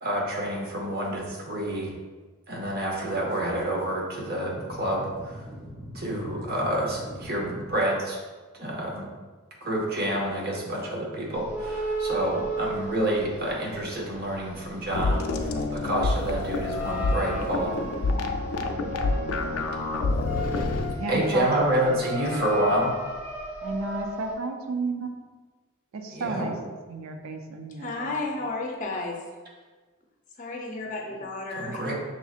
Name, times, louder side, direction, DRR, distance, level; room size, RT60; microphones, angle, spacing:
voice 1, 0.0-1.9 2.5-5.1 5.9-8.2 8.6-9.1 9.6-17.8 21.1-22.9 26.1-26.5 31.6-31.9, right 1 dB, 50° right, -1 dB, 0.8 m, -28 dB
sound 1, 4.5-7.7, equal, 30° right, 1.2 m, -41 dB
sound 2, 11.3-13.8 14.1-24.3, equal, 10° right, 0.6 m, -35 dB
sound 3, 14.9-20.9, left 3 dB, 85° left, 0.4 m, -28 dB
voice 2, 21.0-22.5 23.6-25.2 25.9-26.5 26.9-28.4, right 3 dB, 80° right, 5 dB, 0.4 m, -33 dB
voice 3, 27.8-29.2 30.4-31.9, left 3 dB, 35° left, 1 dB, 0.5 m, -32 dB
6.0 x 2.7 x 2.4 m, 1.3 s
head